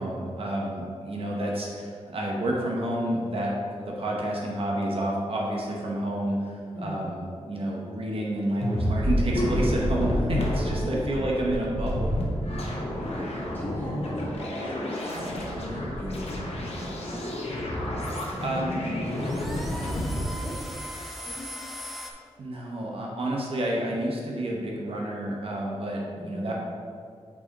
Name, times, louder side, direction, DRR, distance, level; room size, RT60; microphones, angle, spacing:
voice 1, 0.0-12.1 18.4-18.8 22.4-26.5, right 1 dB, 55° right, -2 dB, 1.0 m, -29 dB
sound 1, 8.6-20.2, equal, 65° left, 1.0 m, -29 dB
voice 2, 10.8-11.3 13.0-17.3 18.1-20.5 21.2-21.5 26.1-26.4, left 1 dB, 15° left, -6 dB, 1.5 m, -38 dB
sound 2, 17.2-22.1, equal, ahead, 0.6 m, -40 dB
5.6 x 4.8 x 4.1 m, 2.2 s
wide cardioid pair, 160°, 11 cm